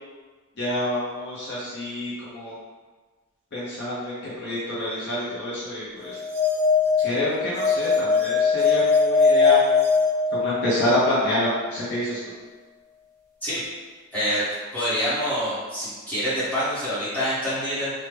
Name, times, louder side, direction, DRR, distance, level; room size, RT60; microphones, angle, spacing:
voice 1, 0.6-2.5 3.5-4.1 4.4-6.1 7.0-9.6 10.3-12.2, left 1 dB, 50° left, -8 dB, 0.6 m, -27 dB
sound 1, 6.1-10.9, left 5 dB, 15° right, 0.7 m, -21 dB
voice 2, 14.1-17.9, equal, 10° left, -13 dB, 1.3 m, -26 dB
3.2 x 2.0 x 3.2 m, 1.4 s
head